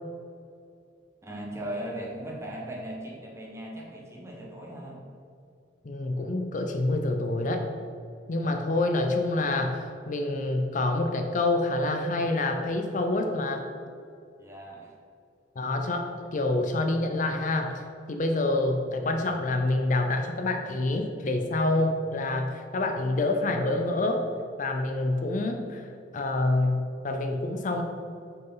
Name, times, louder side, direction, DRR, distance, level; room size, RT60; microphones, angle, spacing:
voice 1, 1.2-5.0 14.4-14.9, right 1 dB, 15° right, -2 dB, 1.3 m, -38 dB
voice 2, 5.8-7.7 8.3-13.7 15.6-17.8 18.1-24.2 24.6-25.9 26.1-27.8, left 2 dB, 45° left, 4 dB, 0.5 m, -27 dB
6.3 x 4.7 x 5.5 m, 2.5 s
head